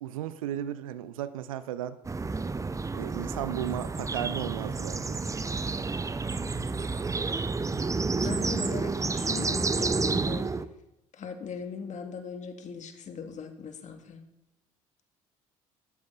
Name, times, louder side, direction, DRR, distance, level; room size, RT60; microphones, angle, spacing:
voice 1, 0.0-2.0 2.9-5.2 8.2-8.3, right 11 dB, 75° right, 15 dB, 0.8 m, -35 dB
sound 1, 2.0-10.7, right 4 dB, 20° right, 0.9 m, -30 dB
voice 2, 8.2-10.5 11.2-14.2, left 6 dB, 45° left, 5 dB, 2.5 m, -39 dB
18.0 x 13.5 x 4.1 m, 0.88 s
figure-of-eight pair, 55°, 18 cm